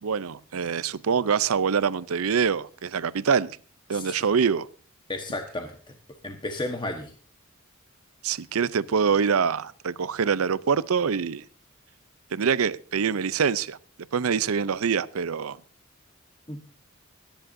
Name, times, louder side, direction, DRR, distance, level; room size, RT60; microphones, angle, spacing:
voice 1, 0.0-3.6 3.9-4.7 8.2-11.4 12.3-13.8 14.1-15.6, right 6 dB, 85° right, 18 dB, 0.5 m, -25 dB
voice 2, 3.9-4.2 5.1-5.7 6.2-7.1 16.5-16.6, left 2 dB, 20° left, 4 dB, 1.2 m, -33 dB
25.5 x 10.5 x 2.6 m, 0.39 s
head